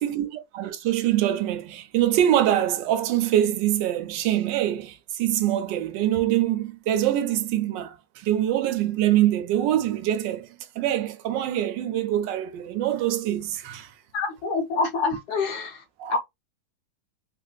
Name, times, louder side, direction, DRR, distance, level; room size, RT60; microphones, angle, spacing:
voice 1, 0.0-13.9 16.0-16.2, right 12 dB, 85° right, 1.2 m, -24 dB
voice 2, 14.1-15.8 16.1-16.2, left 4 dB, 65° left, 1.3 m, -26 dB
3.5 x 2.6 x 2.3 m
omnidirectional pair, 1.9 m